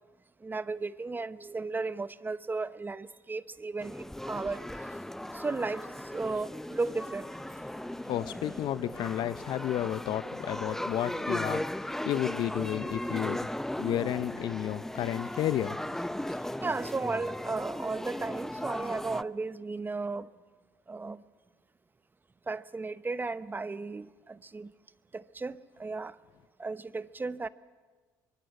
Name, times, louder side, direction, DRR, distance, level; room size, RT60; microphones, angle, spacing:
voice 1, 0.4-4.6 5.3-5.8 6.1-7.3 16.6-20.3 20.9-21.2 22.5-24.7 25.1-26.1 26.6-27.5, right 3 dB, 20° right, 0.9 m, -35 dB
sound 1, 3.8-19.2, left 1 dB, 5° left, 0.6 m, -37 dB
voice 2, 8.1-13.5 13.8-15.8, left 12 dB, 60° left, 0.8 m, -32 dB
23.5 x 23.0 x 8.1 m
hypercardioid pair, 65°, 9 cm